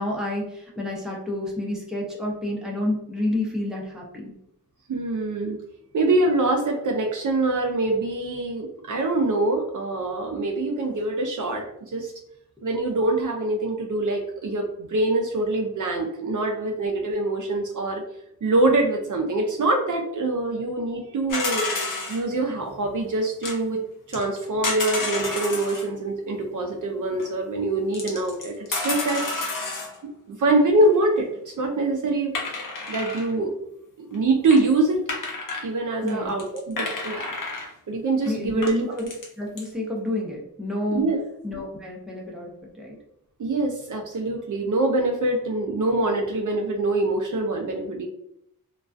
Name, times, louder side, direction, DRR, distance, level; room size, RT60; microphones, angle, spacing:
voice 1, 0.0-4.3 21.0-21.1 36.0-36.3 38.3-39.1 39.4-41.0 41.4-42.9, left 1 dB, ahead, -3 dB, 0.6 m, -29 dB
voice 2, 4.9-5.6 5.9-12.1 12.6-18.0 18.4-21.6 22.1-23.8 24.1-29.3 30.3-32.3 32.9-33.5 34.0-35.0 35.6-37.3 37.9-39.0 40.9-41.2 43.4-48.1, right 2 dB, 55° right, 2 dB, 0.4 m, -24 dB
sound 1, 21.3-22.2 23.4-23.6 24.1-25.9 27.2-27.3 27.9-30.0 32.3-33.3 34.1-34.2 34.5-34.6 35.1-35.7 36.1-36.2 36.4-37.7 38.2-38.3 38.6-39.3 39.6-39.7, left 3 dB, 60° left, 0.7 m, -30 dB
2.3 x 2.2 x 2.4 m, 0.76 s
wide cardioid pair, 85°, 37 cm